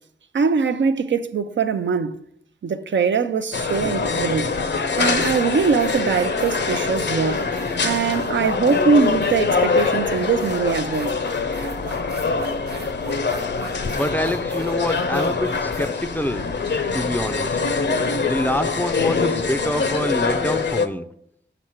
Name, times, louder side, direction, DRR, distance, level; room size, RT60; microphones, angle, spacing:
voice 1, 0.3-2.2 2.6-4.6 5.0-7.5 7.8-11.2, right 5 dB, 80° right, 0.5 m, -22 dB
sound 1, 3.5-20.9, left 4 dB, 70° left, 0.6 m, -24 dB
sound 2, 4.3-4.4 4.9-17.2, right 4 dB, 60° right, 1.0 m, -41 dB
voice 2, 13.6-16.5 16.9-17.6 18.2-21.1, left 1 dB, 10° left, 0.4 m, -26 dB
6.4 x 6.0 x 4.4 m
wide cardioid pair, 60°, 19 cm